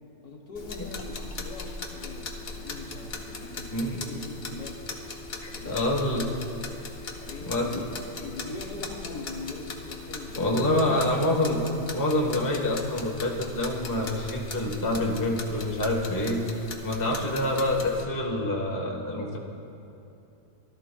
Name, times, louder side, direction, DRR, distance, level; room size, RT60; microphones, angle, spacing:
voice 1, 0.2-4.8 5.5-6.5 7.2-11.1, left 3 dB, 65° left, 1 dB, 1.7 m, -41 dB
sound 1, 0.5-18.0, left 3 dB, 40° left, 0.7 m, -39 dB
voice 2, 5.6-6.3 7.5-7.7 10.4-11.7 11.9-16.4 16.8-19.4, left 1 dB, 15° left, -2 dB, 0.9 m, -26 dB
17.0 x 13.0 x 2.3 m, 2.8 s
omnidirectional pair, 1.8 m